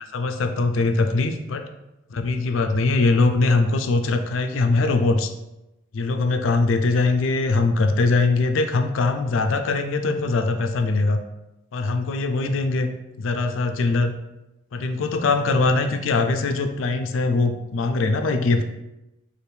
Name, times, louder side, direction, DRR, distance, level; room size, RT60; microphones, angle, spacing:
voice 1, 0.1-1.6 2.1-5.3 5.9-11.2 11.7-12.9 13.2-14.1 14.7-18.6, left 3 dB, 90° left, 7 dB, 0.4 m, -21 dB
3.3 x 2.5 x 4.3 m, 0.95 s
head